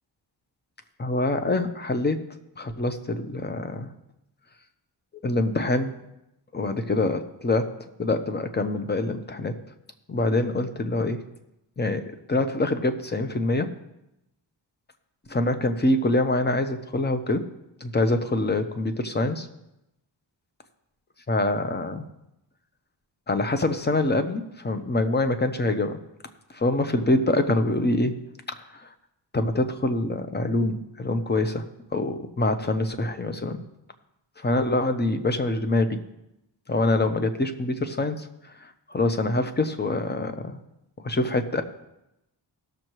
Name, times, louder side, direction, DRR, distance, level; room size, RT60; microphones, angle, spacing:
voice 1, 1.0-2.2 2.6-3.9 5.2-5.9 6.5-7.7 8.0-9.5 10.1-11.2 11.8-12.0 12.3-13.7 15.3-17.4 17.8-19.5 21.3-22.0 23.3-26.0 26.5-28.1 28.5-28.9 29.3-31.6 31.9-33.6 34.4-36.0 36.7-38.3 38.6-40.6 41.0-41.6, left 2 dB, 25° left, 8 dB, 0.8 m, -25 dB
18.0 x 6.6 x 3.1 m, 0.88 s
wide cardioid pair, 90°, 44 cm